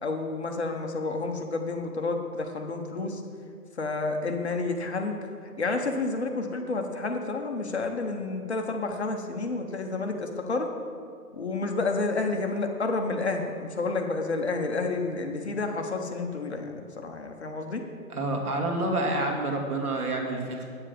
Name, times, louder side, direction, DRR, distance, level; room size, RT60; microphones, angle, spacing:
voice 1, 0.0-3.2 3.8-5.2 5.4-10.7 11.3-17.8, left 3 dB, 45° left, 4 dB, 0.9 m, -30 dB
voice 2, 18.1-20.7, right 2 dB, 80° right, 1 dB, 2.0 m, -28 dB
8.8 x 7.4 x 5.1 m, 2.3 s
hypercardioid pair, 175°, 45 cm